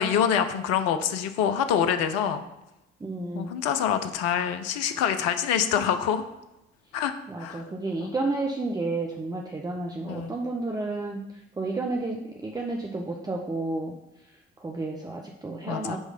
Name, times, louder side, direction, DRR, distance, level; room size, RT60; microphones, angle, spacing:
voice 1, 0.0-2.4 3.3-6.2 6.9-7.1 7.4-7.6 8.0-8.1 10.1-10.3 15.7-16.0, left 8 dB, 55° left, 9 dB, 0.7 m, -25 dB
voice 2, 3.0-3.6 7.3-11.2 11.6-13.9 14.6-16.0, right 2 dB, 15° right, 0 dB, 0.8 m, -31 dB
9.6 x 3.2 x 5.1 m, 0.92 s
figure-of-eight pair, 50°, 30 cm